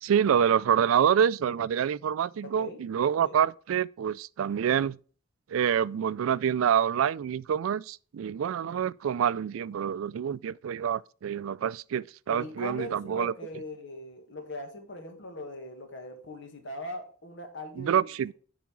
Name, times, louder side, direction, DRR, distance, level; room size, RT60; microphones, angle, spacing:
voice 1, 0.0-5.0 5.5-13.3 17.8-18.3, right 8 dB, 90° right, 0.3 m, -27 dB
voice 2, 2.4-2.8 3.2-3.4 12.3-18.3, left 1 dB, 65° left, 1.9 m, -40 dB
9.4 x 4.8 x 4.6 m
head